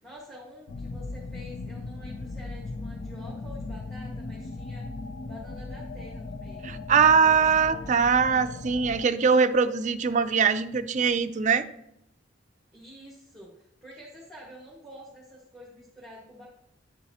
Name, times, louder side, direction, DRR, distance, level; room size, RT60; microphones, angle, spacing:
voice 1, 0.0-4.8 5.2-6.8 12.7-16.5, equal, ahead, -5 dB, 1.6 m, -48 dB
sound 1, 0.7-9.0, left 3 dB, 50° left, 0.4 m, -38 dB
voice 2, 6.6-11.7, right 6 dB, 40° right, 9 dB, 0.4 m, -22 dB
9.6 x 7.1 x 2.9 m, 0.79 s
head